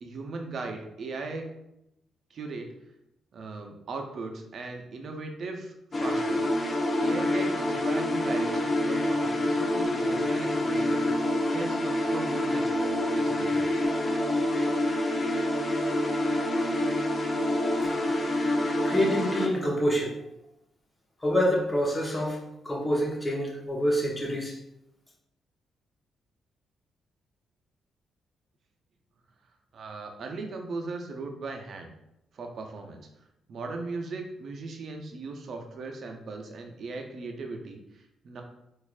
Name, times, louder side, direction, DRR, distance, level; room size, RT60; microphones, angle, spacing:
voice 1, 0.0-1.5 2.3-2.7 3.3-6.4 7.0-13.8 29.7-31.9 32.3-33.1 33.5-38.4, right 3 dB, 60° right, 4 dB, 0.6 m, -38 dB
sound 1, 5.9-19.5, left 1 dB, 40° left, 0.6 m, -27 dB
voice 2, 18.8-20.1 21.2-24.6, equal, 15° left, -2 dB, 1.1 m, -27 dB
4.1 x 2.5 x 2.5 m, 0.85 s
supercardioid pair, 55°, 0 cm